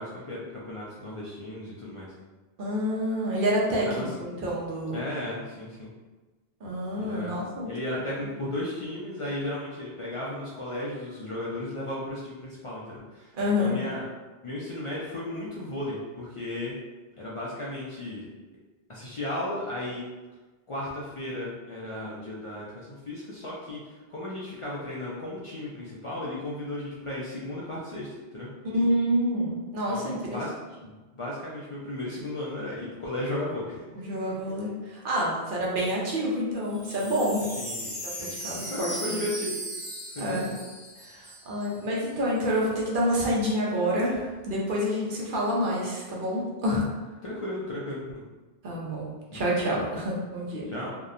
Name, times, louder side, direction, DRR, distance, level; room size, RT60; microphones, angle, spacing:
voice 1, 0.0-2.1 3.9-4.1 4.9-5.9 7.0-13.3 13.6-14.0 14.4-16.7 17.2-18.3 18.9-20.1 20.7-28.1 28.3-28.5 29.9-30.5 30.8-34.0 34.3-34.4 37.6-39.6 40.2-40.6 47.2-48.2 49.3-49.4 50.7-50.9, left 1 dB, 55° left, -6 dB, 0.3 m, -35 dB
voice 2, 2.6-5.0 6.6-7.7 13.4-13.8 28.6-30.4 33.9-37.4 38.2-39.2 40.2-40.5 41.1-46.8 48.6-50.7, equal, 60° right, -4 dB, 0.8 m, -28 dB
Wind chime, 36.6-41.8 42.0-42.1 42.4-42.8, equal, 30° right, 1.4 m, -38 dB
2.8 x 2.1 x 2.4 m, 1.2 s
omnidirectional pair, 1.0 m